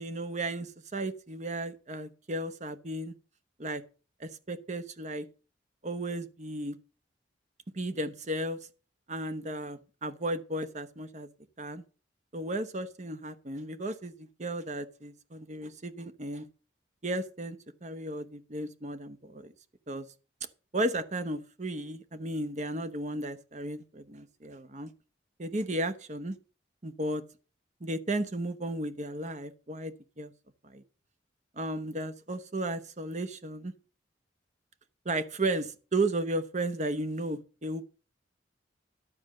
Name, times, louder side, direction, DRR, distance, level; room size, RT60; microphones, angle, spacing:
voice 1, 0.0-3.1 3.6-3.8 4.2-5.3 5.8-6.8 7.7-8.6 9.1-11.3 11.6-11.8 12.3-16.5 17.0-19.5 19.9-20.0 20.7-24.9 25.4-26.4 26.8-27.2 27.8-30.3 30.6-30.8 31.6-33.7 35.0-37.8, right 1 dB, 40° right, 1.0 m, -34 dB
12.0 x 4.4 x 7.7 m
head